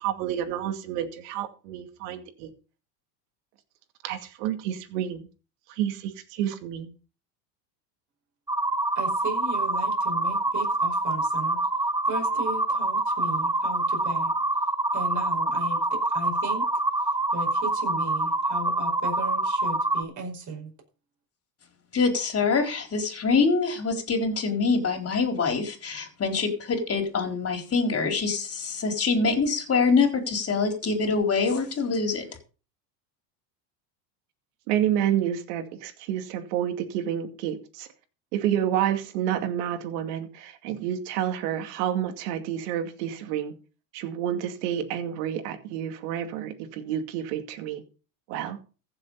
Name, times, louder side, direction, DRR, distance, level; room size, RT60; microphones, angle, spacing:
voice 1, 0.0-2.5 4.0-5.3 5.7-6.9 34.7-37.9 38.3-43.5 43.9-47.8 48.3-48.6, right 10 dB, 70° right, 8 dB, 2.5 m, -29 dB
sound 1, 8.5-20.0, right 2 dB, 5° right, 1.3 m, -26 dB
voice 2, 8.9-11.6 12.1-14.3 14.9-16.6 17.3-20.7, right 2 dB, 35° right, 2 dB, 5.3 m, -36 dB
voice 3, 21.9-32.3, left 4 dB, 30° left, 5 dB, 4.2 m, -25 dB
15.0 x 7.1 x 5.5 m, 0.35 s
supercardioid pair, 100°, 49 cm